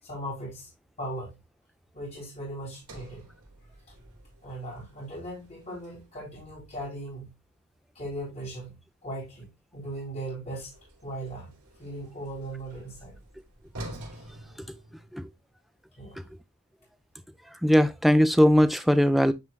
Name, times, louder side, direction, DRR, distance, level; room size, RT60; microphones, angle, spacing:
voice 1, 0.0-0.7 1.0-1.4 1.9-3.3 4.4-7.3 7.9-10.7 11.0-11.5 11.8-13.2 16.0-16.3, right 1 dB, 35° left, 3.4 m, -38 dB
Sliding door, 2.7-7.0 10.5-15.4, right 1 dB, 75° right, 3.0 m, -48 dB
voice 2, 17.6-19.3, equal, ahead, 0.4 m, -20 dB
9.4 x 4.5 x 2.2 m
head